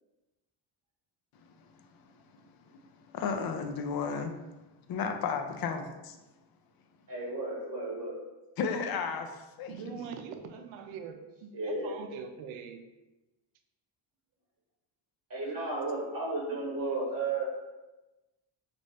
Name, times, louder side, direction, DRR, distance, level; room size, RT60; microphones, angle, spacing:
voice 1, 2.3-4.3 4.9-5.8 8.6-10.1, left 5 dB, 50° left, 5 dB, 0.5 m, -34 dB
voice 2, 7.1-8.2 11.5-11.9 15.3-17.4, right 3 dB, 45° right, -4 dB, 1.1 m, -33 dB
voice 3, 9.7-12.8, right 6 dB, 80° right, 7 dB, 0.5 m, -42 dB
3.1 x 2.6 x 3.2 m, 1.1 s
cardioid pair, 105°, 47 cm